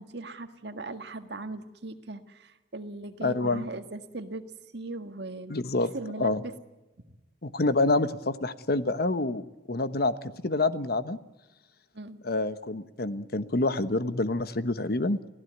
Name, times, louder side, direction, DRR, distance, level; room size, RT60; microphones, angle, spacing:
voice 1, 0.0-4.4 4.7-5.5 5.9-6.6 11.9-12.2, right 2 dB, 60° right, 7 dB, 1.8 m, -39 dB
voice 2, 3.2-3.6 5.5-6.4 7.4-10.1 10.4-11.2 12.2-15.2, left 2 dB, 55° left, 12 dB, 1.1 m, -27 dB
28.0 x 16.5 x 9.3 m, 1.1 s
head